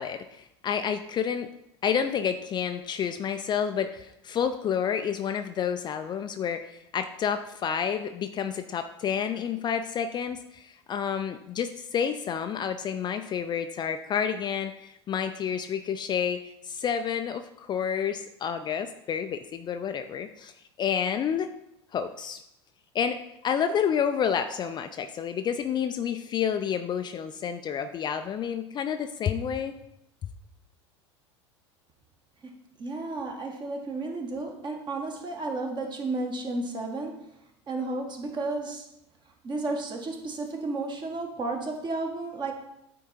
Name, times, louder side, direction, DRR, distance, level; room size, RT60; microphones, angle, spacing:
voice 1, 0.0-1.5 1.8-20.5 20.8-21.5 21.9-22.4 22.9-23.2 23.4-29.7, left 7 dB, 30° left, 8 dB, 0.4 m, -29 dB
voice 2, 32.8-37.3 37.7-38.9 39.4-42.5, right 2 dB, 30° right, 2 dB, 1.5 m, -32 dB
9.0 x 3.7 x 4.4 m, 0.81 s
figure-of-eight pair, 80°, 15 cm